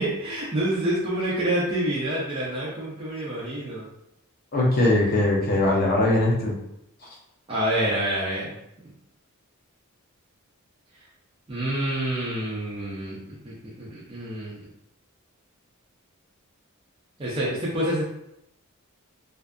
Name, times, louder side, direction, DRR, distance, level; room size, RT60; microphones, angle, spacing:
voice 1, 0.0-3.9 7.5-8.5 11.5-14.6 17.2-18.0, right 1 dB, 25° right, -7 dB, 0.4 m, -27 dB
voice 2, 4.5-6.5, left 2 dB, 45° left, -2 dB, 0.6 m, -21 dB
2.5 x 2.3 x 2.2 m, 0.80 s
head